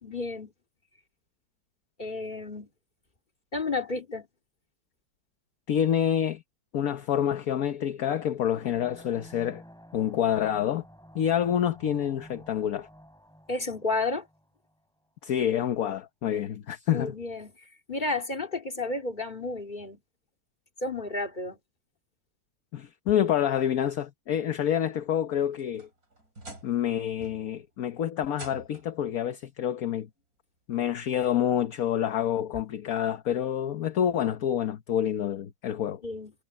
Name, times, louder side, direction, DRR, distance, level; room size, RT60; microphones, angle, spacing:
voice 1, 0.0-0.5 2.0-2.7 3.5-4.3 13.5-14.3 16.9-17.5 17.9-20.0 20.8-21.6 36.0-36.3, left 3 dB, 25° left, 3.0 m, -31 dB
voice 2, 5.7-6.4 6.7-9.6 9.9-10.8 11.1-12.9 15.2-17.1 22.7-25.9 26.6-30.1 30.7-36.0, left 10 dB, 55° left, 1.2 m, -27 dB
sound 1, 8.6-14.7, equal, ahead, 8.0 m, -51 dB
sound 2, 25.3-26.9 27.2-27.7 28.3-29.0 30.2-30.3 30.9-31.0 32.6-32.7, right 2 dB, 50° right, 6.8 m, -46 dB
omnidirectional pair, 2.0 m